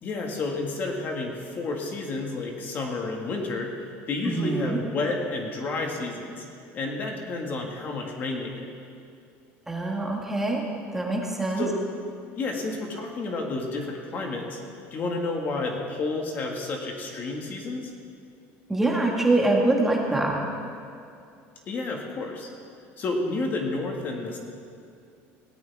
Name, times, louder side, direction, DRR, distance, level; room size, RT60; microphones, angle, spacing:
voice 1, 0.0-3.7 4.1-6.4 6.7-8.7 11.6-11.8 12.3-14.6 14.9-17.9 21.7-22.5 23.0-24.4, left 3 dB, 35° left, 1 dB, 1.8 m, -30 dB
voice 2, 4.3-4.8 9.7-10.6 10.9-11.6 18.7-20.4, right 2 dB, 5° right, -2 dB, 1.7 m, -24 dB
18.0 x 17.0 x 3.5 m, 2.4 s
cardioid pair, 155°, 5 cm